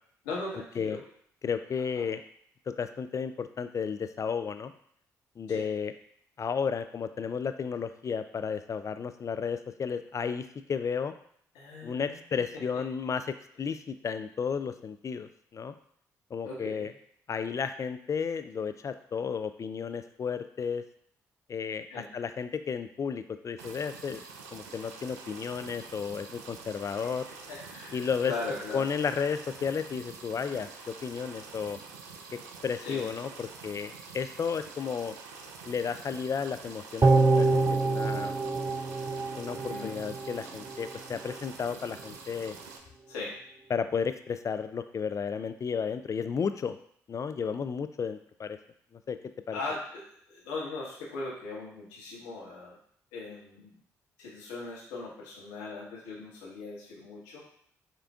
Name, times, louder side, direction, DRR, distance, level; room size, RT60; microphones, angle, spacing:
voice 1, 0.2-1.0 1.9-2.1 5.5-5.7 11.5-12.2 16.4-16.9 21.9-22.1 26.8-27.1 27.5-28.8 32.8-33.0 39.5-40.0 43.1-43.3 49.5-52.8 53.1-53.7 54.2-57.4, left 3 dB, 80° left, -4 dB, 1.1 m, -39 dB
voice 2, 1.4-2.2 2.8-4.7 5.4-5.9 6.4-11.1 11.8-13.2 13.6-15.7 16.3-16.9 17.3-20.8 21.5-21.9 22.1-24.2 24.5-27.2 27.9-28.3 28.7-31.8 32.6-35.1 35.7-38.3 39.4-42.5 43.7-46.8 47.1-48.6 49.1-49.2 49.5-49.6, left 6 dB, 40° left, 10 dB, 0.3 m, -33 dB
sound 1, 23.6-42.8, right 5 dB, 85° right, 0.4 m, -47 dB
sound 2, 37.0-40.3 40.7-40.8, right 3 dB, 30° right, 0.5 m, -25 dB
6.5 x 2.5 x 2.3 m, 0.65 s
hypercardioid pair, 45°, 8 cm